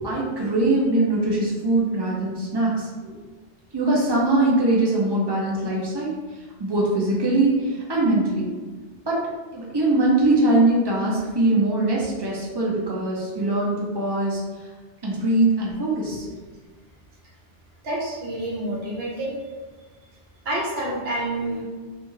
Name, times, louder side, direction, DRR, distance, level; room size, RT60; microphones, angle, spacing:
voice 1, 0.0-2.9 3.7-6.1 6.6-8.5 9.1-9.2 9.5-14.4 15.0-16.3, right 2 dB, 35° right, -4 dB, 0.4 m, -22 dB
voice 2, 17.8-19.4 20.4-21.6, right 1 dB, 60° right, -3 dB, 0.9 m, -28 dB
2.5 x 2.3 x 3.1 m, 1.3 s
omnidirectional pair, 1.2 m